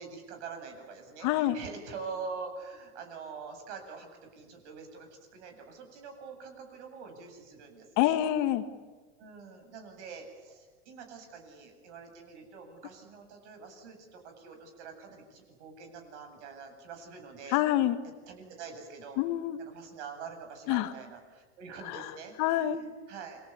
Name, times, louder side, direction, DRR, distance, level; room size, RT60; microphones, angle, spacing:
voice 1, 0.0-8.2 9.2-17.6 18.3-19.2 19.6-23.4, right 5 dB, 65° right, 5 dB, 8.0 m, -45 dB
voice 2, 1.2-1.6 8.0-8.6 17.5-18.0 19.2-19.6 20.7-20.9 21.9-22.0 22.4-22.8, left 13 dB, 50° left, 9 dB, 2.1 m, -26 dB
29.0 x 23.5 x 8.5 m, 1.3 s
hypercardioid pair, 95°, 37 cm